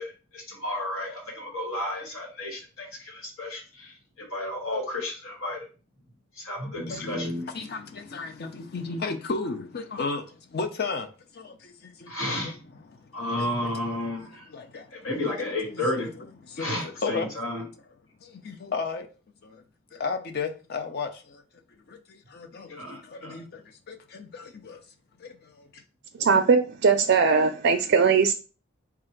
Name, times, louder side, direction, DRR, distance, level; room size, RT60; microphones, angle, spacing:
voice 1, 0.0-5.6 6.4-7.4 12.1-12.6 13.1-14.4 14.9-16.1 16.6-17.6 22.7-23.4, left 1 dB, 85° left, 1.7 m, -32 dB
voice 2, 6.9-17.3 17.6-17.7 18.2-19.1 19.4-19.6 19.9-21.4 21.7-24.8 25.2-25.8, left 4 dB, 50° left, 0.6 m, -35 dB
voice 3, 26.1-28.3, right 5 dB, 55° right, 0.4 m, -20 dB
3.6 x 2.5 x 4.4 m
head